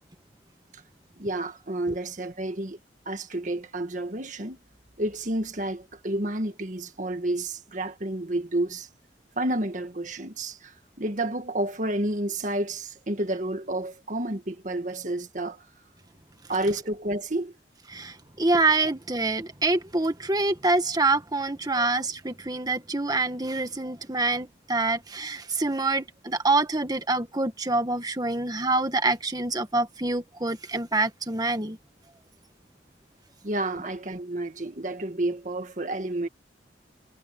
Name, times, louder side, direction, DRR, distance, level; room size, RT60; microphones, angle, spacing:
voice 1, 1.2-2.8 3.1-4.6 5.0-8.9 9.4-15.7 16.5-17.5 21.7-21.9 33.4-36.3, right 1 dB, 45° right, 1.7 m, -30 dB
voice 2, 17.9-31.8, right 2 dB, 20° right, 1.6 m, -26 dB
head